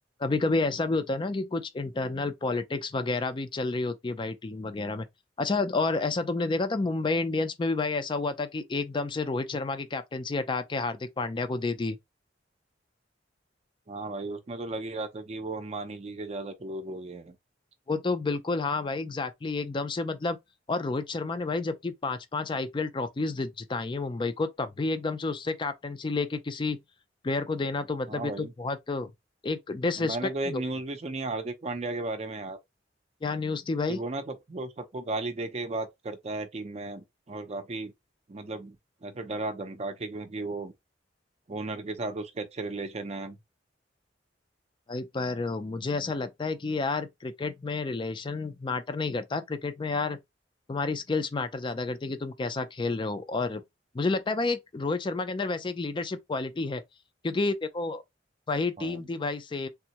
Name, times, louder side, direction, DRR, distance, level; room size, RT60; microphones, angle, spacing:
voice 1, 0.2-5.1 5.4-12.0 17.9-20.4 20.7-26.8 27.2-29.1 29.4-30.6 33.2-34.0 44.9-50.2 50.7-53.6 53.9-56.8 57.2-58.0 58.5-59.7, left 3 dB, 25° left, 0.4 m, -30 dB
voice 2, 13.9-17.4 28.1-28.5 30.0-32.6 33.9-37.9 38.3-38.8 39.0-40.7 41.5-43.4 58.8-59.0, right 2 dB, 35° right, 0.5 m, -35 dB
3.5 x 2.0 x 2.8 m
head